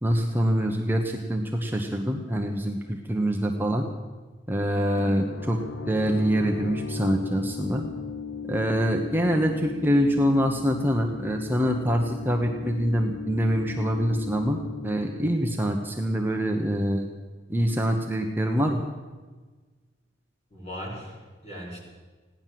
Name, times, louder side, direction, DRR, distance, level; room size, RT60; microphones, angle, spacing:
voice 1, 0.0-3.9 4.5-5.6 5.9-7.8 8.5-17.1 17.5-18.9, equal, 10° right, 2 dB, 1.0 m, -25 dB
sound 1, 5.0-16.5, left 5 dB, 80° left, 0.9 m, -37 dB
voice 2, 20.5-21.8, equal, 35° left, -3 dB, 4.9 m, -38 dB
16.5 x 10.5 x 7.6 m, 1.4 s
head